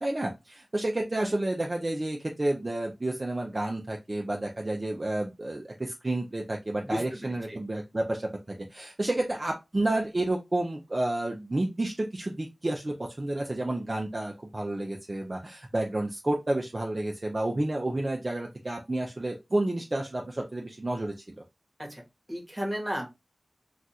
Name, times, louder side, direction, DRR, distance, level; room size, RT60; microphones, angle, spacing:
voice 1, 0.0-21.4, right 1 dB, 40° right, 0 dB, 0.5 m, -30 dB
voice 2, 6.8-7.6 21.8-22.0 22.3-23.1, equal, 15° right, 1 dB, 1.2 m, -34 dB
2.4 x 2.4 x 4.1 m, 0.23 s
wide cardioid pair, 65°, 0 cm